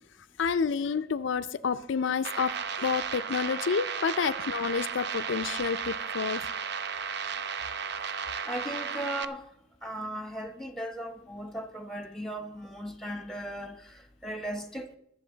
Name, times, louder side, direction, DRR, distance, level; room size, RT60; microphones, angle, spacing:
voice 1, 0.4-6.5, left 5 dB, 65° left, 0.4 m, -29 dB
sound 1, 2.2-9.2, right 6 dB, 55° right, 0.6 m, -34 dB
voice 2, 8.4-9.5 9.8-14.9, right 1 dB, ahead, 1.1 m, -37 dB
21.5 x 7.1 x 3.9 m
head